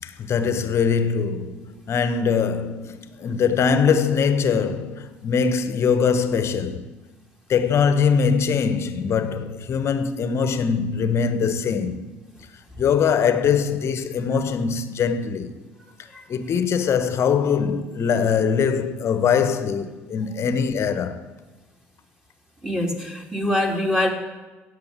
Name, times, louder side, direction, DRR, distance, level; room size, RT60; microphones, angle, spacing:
voice 1, 0.0-6.9 7.5-12.1 12.8-15.5 16.3-21.2, left 6 dB, 45° left, 1.2 m, -22 dB
voice 2, 22.6-24.1, left 1 dB, 10° right, 2.9 m, -24 dB
16.0 x 6.8 x 8.3 m
figure-of-eight pair, 55°, 7 cm